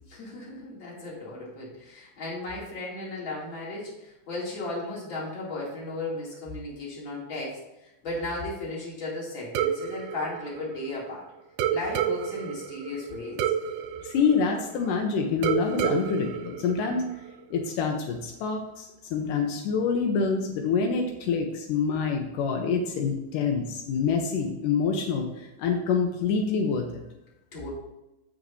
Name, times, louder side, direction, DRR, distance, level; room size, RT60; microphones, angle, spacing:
voice 1, 0.1-11.3 11.7-13.4 27.5-27.8, left 2 dB, 40° left, -5 dB, 3.4 m, -35 dB
sound 1, 9.6-11.1 11.6-15.0 15.4-17.4, right 9 dB, 85° right, 2.2 m, -30 dB
voice 2, 14.0-17.0 17.5-27.0, left 5 dB, 85° left, 2 dB, 2.6 m, -26 dB
16.0 x 6.2 x 2.8 m, 0.96 s
omnidirectional pair, 3.7 m